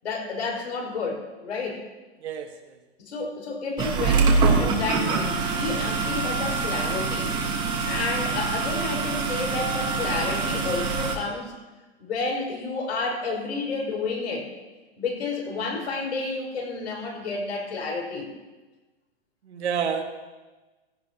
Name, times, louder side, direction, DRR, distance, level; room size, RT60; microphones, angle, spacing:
voice 1, 0.0-1.8 3.1-7.3 7.9-11.5 12.0-14.5 15.0-18.3, left 4 dB, 85° left, 0 dB, 5.3 m, -30 dB
voice 2, 2.2-2.7 19.5-20.0, right 7 dB, 85° right, 4 dB, 1.7 m, -29 dB
sound 1, 3.8-11.2, right 4 dB, 15° right, 1.1 m, -25 dB
16.5 x 16.0 x 2.9 m, 1.2 s
hypercardioid pair, 170°, 32 cm